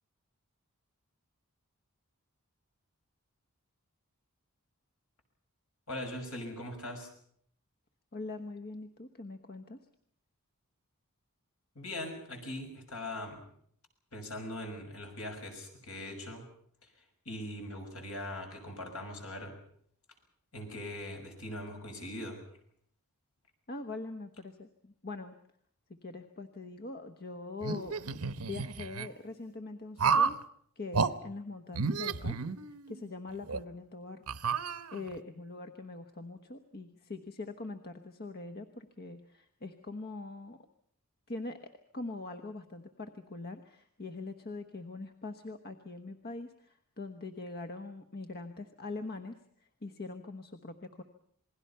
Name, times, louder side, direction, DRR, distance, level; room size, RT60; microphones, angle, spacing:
voice 1, 5.9-7.1 11.7-13.4 14.1-16.5 17.2-19.5 20.5-22.4, left 1 dB, 70° left, 3 dB, 6.2 m, -41 dB
voice 2, 8.1-9.9 23.7-25.3 25.9-28.0 28.4-30.4 30.7-32.4 32.7-34.2 34.6-40.6 41.3-41.6 41.9-51.0, left 3 dB, 45° left, 7 dB, 1.1 m, -43 dB
sound 1, 27.6-29.1 30.0-30.4 30.9-31.1 31.7-33.0 33.5-33.6 34.3-35.2, right 5 dB, 80° right, 1.0 m, -31 dB
28.0 x 20.5 x 5.7 m, 0.64 s
head